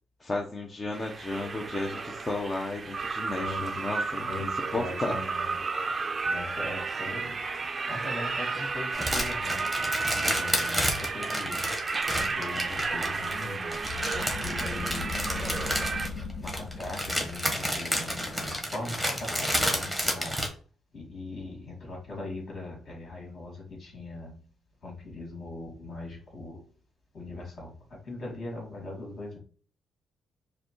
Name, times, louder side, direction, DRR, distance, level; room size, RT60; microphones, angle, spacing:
voice 1, 0.2-4.3 4.7-5.2, left 2 dB, 20° left, 0.7 m, -33 dB
sound 1, 0.9-16.1, right 4 dB, 30° right, 0.5 m, -32 dB
voice 2, 3.4-3.9 4.3-5.6 6.2-7.4 7.9-9.6 10.2-11.7 12.1-13.9 14.2-15.9 16.4-20.5 20.9-24.4 24.8-26.7 27.1-29.4, left 2 dB, 50° left, 2.4 m, -40 dB
sound 2, 8.9-20.5, equal, ahead, 1.2 m, -31 dB
sound 3, 13.8-19.0, left 5 dB, 65° left, 1.1 m, -39 dB
5.0 x 2.3 x 4.5 m
cardioid pair, 105°, 0 cm